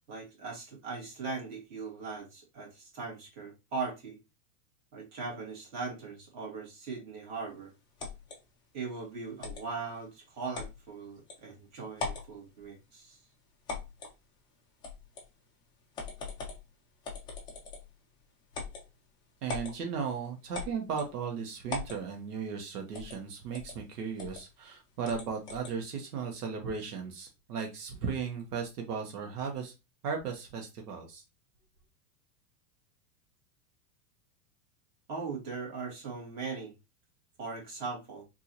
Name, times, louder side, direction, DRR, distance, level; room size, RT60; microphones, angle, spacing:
voice 1, 0.1-4.2 4.9-7.7 8.7-13.2 35.1-36.7 37.4-38.2, right 4 dB, 35° right, 2.1 m, -39 dB
sound 1, 8.0-8.4 9.4-9.7 10.5-10.8 11.3-11.4 11.9-12.3 13.7-14.1 14.8-15.3 15.9-16.6 17.0-17.9 18.5-18.8 19.5-19.7 20.5-21.1 21.7-22.0 22.9-23.2 23.5-23.8 24.2-24.4 25.0-25.7, left 4 dB, 10° left, 0.3 m, -39 dB
voice 2, 19.4-29.7 30.0-31.2, right 6 dB, 90° right, 1.1 m, -36 dB
3.8 x 2.7 x 2.9 m
supercardioid pair, 140°, 45 cm